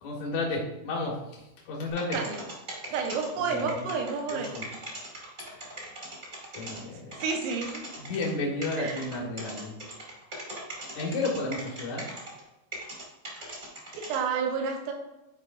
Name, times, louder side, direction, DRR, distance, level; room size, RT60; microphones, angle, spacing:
voice 1, 0.0-2.2 3.4-3.8 4.3-4.7 6.6-7.1 8.0-9.7 10.9-12.0, left 2 dB, 70° left, -3 dB, 1.8 m, -32 dB
sound 1, 1.9-6.8 7.1-8.3 8.6-12.4 12.7-14.2, right 1 dB, 25° right, 1.6 m, -40 dB
voice 2, 2.9-4.5 7.2-7.8 8.8-9.0 14.0-14.9, right 5 dB, 85° right, 2 dB, 3.8 m, -30 dB
13.0 x 4.9 x 2.6 m, 0.94 s
omnidirectional pair, 5.8 m